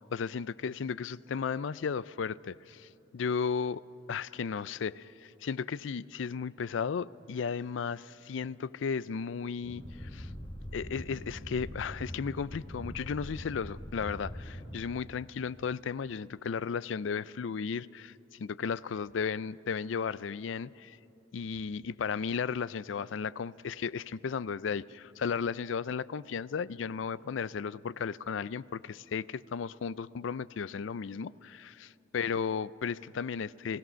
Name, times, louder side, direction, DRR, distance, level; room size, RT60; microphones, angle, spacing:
voice 1, 0.1-3.8 4.1-10.3 10.7-18.1 18.4-21.0 21.3-33.8, left 6 dB, 75° left, 20 dB, 0.4 m, -35 dB
sound 1, 9.6-14.8, equal, 25° left, 1.7 m, -43 dB
30.0 x 16.5 x 6.3 m, 2.9 s
head